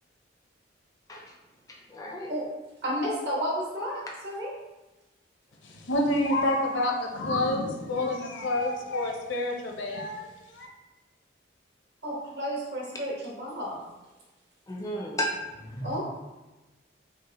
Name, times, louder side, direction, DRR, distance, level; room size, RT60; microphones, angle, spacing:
voice 1, 1.9-2.3 14.7-15.4 15.6-16.0, equal, 20° left, -1 dB, 0.4 m, -33 dB
voice 2, 2.8-4.5 12.0-13.8 15.8-16.0, equal, 60° right, -5 dB, 1.2 m, -32 dB
voice 3, 5.6-10.3 10.5-10.7, left 1 dB, 75° left, 1 dB, 0.6 m, -28 dB
5.3 x 2.1 x 2.9 m, 1.1 s
head